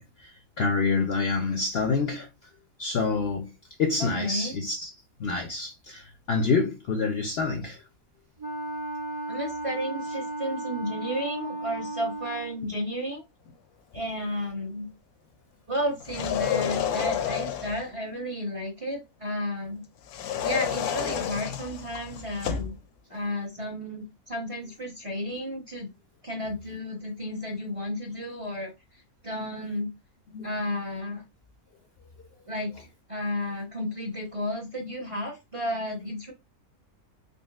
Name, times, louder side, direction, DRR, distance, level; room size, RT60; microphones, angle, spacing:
voice 1, 0.0-2.3 2.8-3.5 3.8-4.9 5.2-7.8 30.3-30.5, left 4 dB, 60° left, 0.6 m, -27 dB
voice 2, 4.0-4.5 9.3-13.2 13.9-14.9 15.7-19.8 20.4-22.7 23.1-25.9 26.2-28.7 29.2-29.9 30.4-31.2 32.5-36.3, left 1 dB, 30° right, 0.7 m, -32 dB
Wind instrument woodwind instrument, 8.4-12.6, right 2 dB, 55° right, 0.3 m, -35 dB
sound 1, 16.0-17.9 20.1-22.8, left 9 dB, 85° left, 1.1 m, -30 dB
3.9 x 3.3 x 2.3 m
omnidirectional pair, 1.5 m